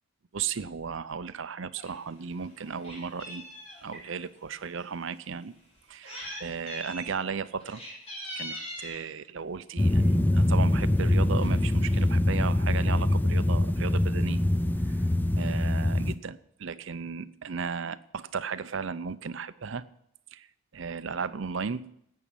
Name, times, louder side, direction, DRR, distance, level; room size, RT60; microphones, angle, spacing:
voice 1, 0.3-3.4 3.8-5.5 5.9-7.8 8.4-14.4 14.9-15.0 15.4-19.8 20.3-20.5 20.7-21.8, right 5 dB, 60° right, 13 dB, 0.6 m, -35 dB
Meow, 1.7-1.9 2.3-4.0 4.8-4.9 5.8-6.4 6.7-7.1 7.6-9.1 10.0-10.3 10.7-10.8 11.0-11.1 11.4-12.1, equal, 30° left, 3.9 m, -41 dB
sound 1, 9.8-16.1, left 1 dB, 10° left, 0.3 m, -24 dB
11.0 x 8.6 x 7.1 m, 0.73 s
head